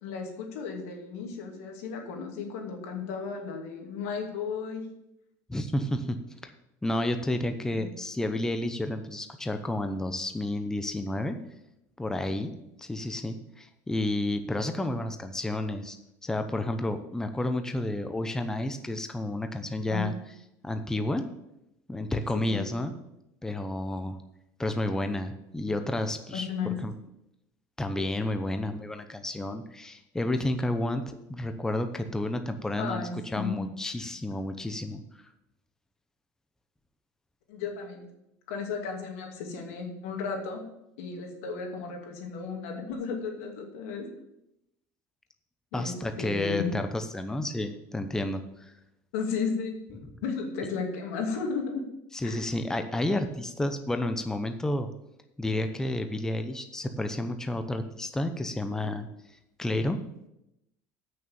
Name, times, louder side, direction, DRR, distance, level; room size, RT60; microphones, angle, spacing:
voice 1, 0.0-4.9 19.9-20.0 22.3-22.7 26.3-26.8 32.8-33.7 37.5-38.1 38.5-40.6 41.0-44.1 45.7-46.7 49.1-51.8 52.2-52.4, left 5 dB, 90° left, 2 dB, 2.4 m, -34 dB
voice 2, 5.5-6.2 6.4-6.5 6.8-11.4 12.0-12.5 12.8-16.0 16.2-20.1 20.6-21.3 21.9-22.9 23.4-24.2 24.6-26.5 26.8-26.9 27.8-35.0 45.7-48.7 52.1-54.9 55.4-59.1 59.6-60.0, left 1 dB, 5° left, 7 dB, 0.8 m, -31 dB
8.6 x 6.4 x 7.0 m, 0.85 s
supercardioid pair, 125°, 7 cm